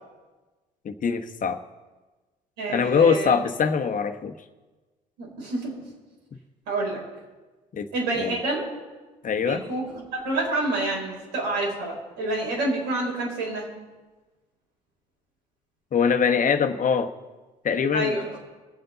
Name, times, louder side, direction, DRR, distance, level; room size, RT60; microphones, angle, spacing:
voice 1, 0.8-1.6 2.7-4.3 7.8-7.9 8.2-8.3 9.2-9.6 15.9-17.1 17.6-18.2, left 6 dB, 40° left, 6 dB, 1.1 m, -23 dB
voice 2, 2.6-3.3 5.2-5.7 6.7-7.0 7.9-8.7 9.4-13.7 17.9-18.3, right 2 dB, 80° right, -3 dB, 4.1 m, -28 dB
22.5 x 7.8 x 4.0 m, 1.2 s
hypercardioid pair, 55°, 21 cm